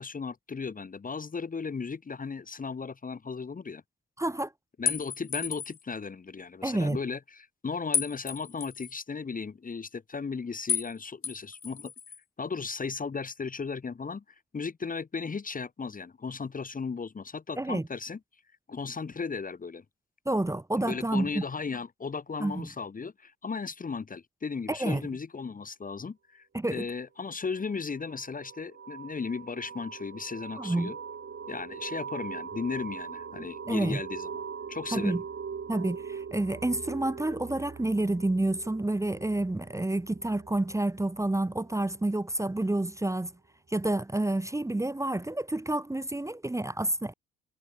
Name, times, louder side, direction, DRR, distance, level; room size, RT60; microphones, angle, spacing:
voice 1, 0.0-3.8 4.8-11.9 12.4-14.2 14.5-18.2 18.7-19.8 20.8-31.0 31.5-34.4 34.7-35.2, left 5 dB, 25° left, 1.1 m, -36 dB
voice 2, 4.2-4.5 6.6-7.0 17.6-17.9 20.2-21.4 22.4-22.7 24.7-25.0 26.5-26.8 30.6-30.9 33.7-34.0 34.9-35.2 35.7-43.3 43.7-47.1, right 2 dB, 10° right, 1.1 m, -29 dB
sound 1, 4.9-5.8 7.9-8.9 10.7-10.9 11.2-12.2, left 7 dB, 45° left, 2.7 m, -32 dB
sound 2, 27.6-42.0, right 6 dB, 45° right, 8.0 m, -41 dB
cardioid pair, 90°, 30 cm